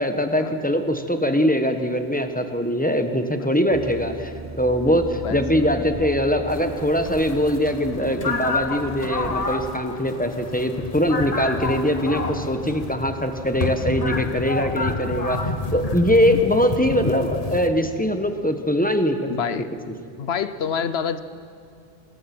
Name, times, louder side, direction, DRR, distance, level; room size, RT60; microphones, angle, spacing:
voice 1, 0.0-4.3 4.6-19.3, equal, 10° left, 6 dB, 1.3 m, -22 dB
sound 1, 3.7-9.8, right 2 dB, 20° right, 0.3 m, -37 dB
voice 2, 5.1-5.7 19.3-19.7 20.2-21.2, left 7 dB, 80° left, 13 dB, 1.1 m, -28 dB
sound 2, 6.5-17.7, left 3 dB, 40° left, 1.3 m, -29 dB
25.5 x 20.5 x 6.1 m, 2.4 s
omnidirectional pair, 1.1 m